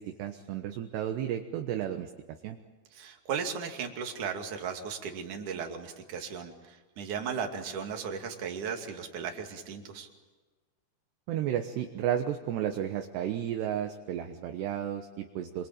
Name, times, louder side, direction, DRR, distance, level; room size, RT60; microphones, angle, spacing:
voice 1, 0.0-2.1 2.4-2.6 11.3-15.7, right 10 dB, 70° right, 6 dB, 3.0 m, -33 dB
voice 2, 2.9-10.1, right 6 dB, 45° right, 4 dB, 3.5 m, -36 dB
27.0 x 24.0 x 8.9 m, 1.3 s
omnidirectional pair, 5.5 m